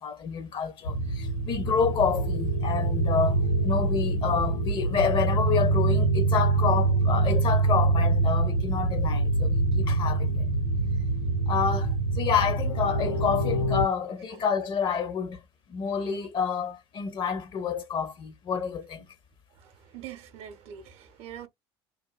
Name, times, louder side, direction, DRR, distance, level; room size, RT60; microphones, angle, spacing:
voice 1, 0.0-10.5 11.5-15.4 15.7-19.1, left 6 dB, 40° left, 0.6 m, -29 dB
sound 1, 0.8-13.9, right 2 dB, 90° left, 1.6 m, -25 dB
voice 2, 19.6-21.5, right 9 dB, 55° right, 0.6 m, -43 dB
3.0 x 2.2 x 2.2 m
figure-of-eight pair, 65°, 13 cm